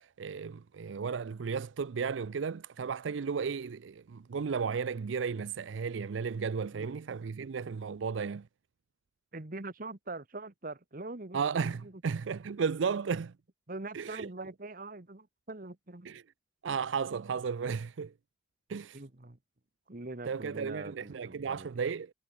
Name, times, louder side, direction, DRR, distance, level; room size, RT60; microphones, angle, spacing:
voice 1, 0.0-8.5 11.3-13.3 13.9-14.3 16.1-16.2 16.6-18.1 18.7-19.0 20.3-22.1, right 6 dB, 85° right, 0.5 m, -34 dB
voice 2, 9.3-11.4 11.8-12.0 13.7-16.1 18.9-19.4 19.9-21.7, right 2 dB, 50° right, 1.4 m, -43 dB
head